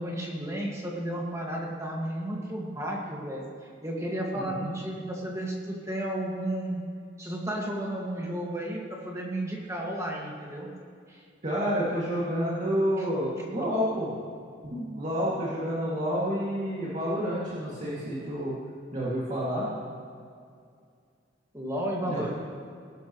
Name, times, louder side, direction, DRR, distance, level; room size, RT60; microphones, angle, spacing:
voice 1, 0.0-3.5 3.8-6.8 7.2-10.7 11.1-11.2 21.5-22.3, right 1 dB, 15° right, -2 dB, 1.9 m, -33 dB
voice 2, 4.3-4.7 11.4-14.1 14.6-18.5 18.9-19.7 22.1-22.2, equal, 40° right, -8 dB, 2.4 m, -29 dB
19.5 x 11.5 x 3.1 m, 2.2 s
head